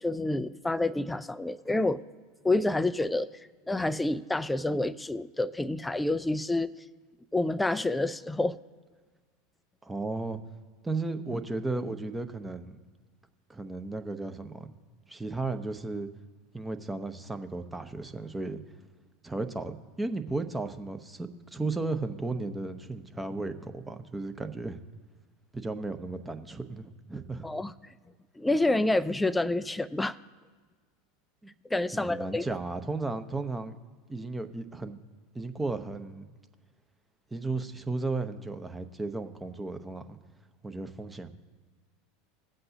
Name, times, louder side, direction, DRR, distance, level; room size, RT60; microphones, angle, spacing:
voice 1, 0.0-2.0 2.4-3.3 3.7-6.7 7.3-8.6 27.4-27.7 28.4-30.2 31.7-32.5, left 2 dB, 10° left, 15 dB, 0.5 m, -28 dB
voice 2, 9.8-10.4 10.8-12.8 13.5-14.7 15.1-16.1 16.5-18.6 19.2-24.8 25.5-27.5 31.4-31.5 31.9-33.8 34.1-35.0 35.3-36.3 37.3-40.2 40.6-41.3, right 3 dB, 10° right, 8 dB, 0.9 m, -34 dB
19.5 x 7.7 x 2.8 m, 1.5 s
figure-of-eight pair, 80°, 0 cm